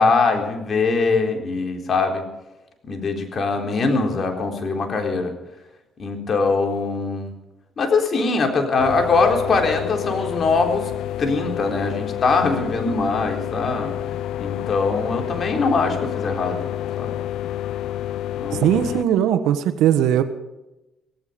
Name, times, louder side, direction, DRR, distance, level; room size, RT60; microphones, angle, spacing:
voice 1, 0.0-2.3 2.8-5.3 6.0-7.3 7.8-10.9 11.2-14.0 14.4-16.7 17.0-17.2 18.4-18.7, left 4 dB, 50° left, 3 dB, 3.8 m, -22 dB
sound 1, 8.8-19.0, left 12 dB, 85° left, 0.8 m, -29 dB
voice 2, 18.6-20.2, right 10 dB, 90° right, 9 dB, 1.3 m, -19 dB
17.0 x 16.0 x 5.2 m, 0.98 s
cardioid pair, 90°, 0 cm